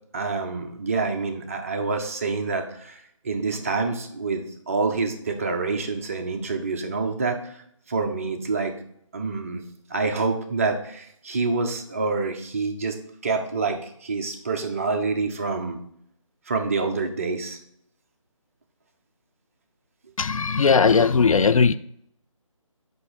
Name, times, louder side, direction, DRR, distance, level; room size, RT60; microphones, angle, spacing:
voice 1, 0.1-3.0 3.2-7.5 7.9-8.7 9.1-9.6 9.9-13.0 13.2-15.8 16.5-17.6, right 4 dB, 25° right, 0.6 m, -27 dB
voice 2, 20.2-21.7, left 5 dB, 75° left, 0.4 m, -18 dB
6.1 x 5.3 x 4.6 m
figure-of-eight pair, 155°, 17 cm